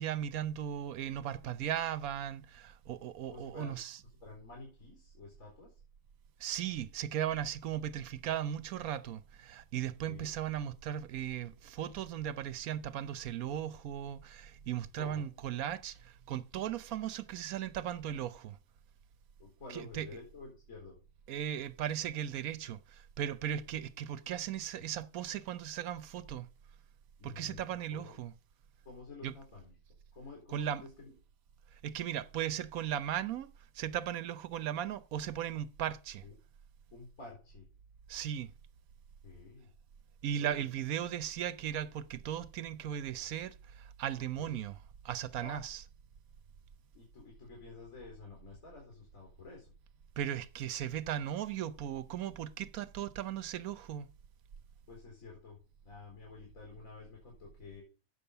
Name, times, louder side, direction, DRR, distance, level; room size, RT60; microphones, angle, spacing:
voice 1, 0.0-4.0 6.4-18.6 19.7-20.1 21.3-26.5 27.2-28.3 29.2-29.3 30.5-30.8 31.8-36.2 38.1-38.5 40.2-44.7 45.0-45.8 50.2-54.1, right 10 dB, 85° right, 1.2 m, -37 dB
voice 2, 3.3-3.8 4.2-5.7 10.0-10.3 15.0-15.2 19.4-21.0 27.2-28.2 28.8-29.7 30.1-31.1 36.2-36.3 36.9-37.7 39.2-39.7 40.4-40.7 44.4-44.6 45.4-45.6 46.9-49.7 54.9-57.8, left 4 dB, 70° left, 4.9 m, -50 dB
9.1 x 7.2 x 6.8 m
omnidirectional pair, 1.5 m